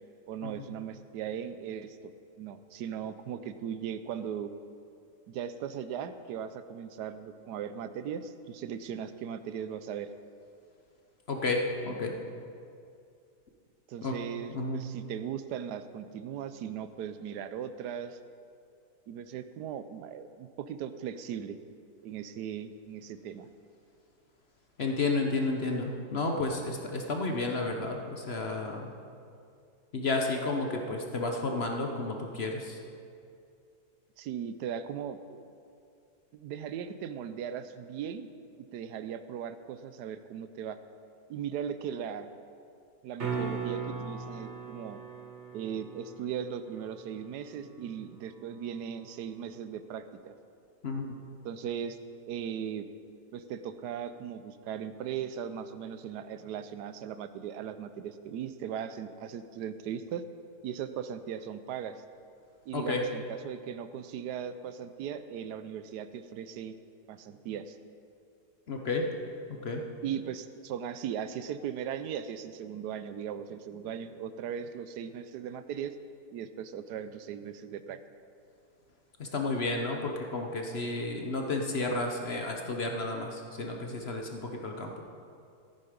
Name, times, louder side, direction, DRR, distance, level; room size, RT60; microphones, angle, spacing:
voice 1, 0.3-2.1 2.4-4.5 5.3-10.1 13.9-18.2 19.1-21.6 22.0-23.5 34.2-35.5 36.3-38.3 38.6-40.8 41.3-42.3 43.0-45.0 45.5-50.3 51.4-52.0 52.3-52.9 53.3-60.2 60.6-62.0 62.7-66.7 67.1-67.8 70.0-75.9 76.3-78.0, right 8 dB, 80° right, 11 dB, 1.2 m, -38 dB
voice 2, 11.3-11.6 11.9-12.1 14.0-14.1 14.5-14.8 24.8-28.9 29.9-32.8 50.8-51.1 62.7-63.1 68.7-69.0 69.6-69.8 79.2-85.0, left 3 dB, 45° left, 2 dB, 1.0 m, -32 dB
sound 1, 43.2-49.2 53.9-54.0, right 5 dB, 45° right, 2.2 m, -40 dB
13.5 x 9.5 x 5.1 m, 2.4 s
omnidirectional pair, 1.8 m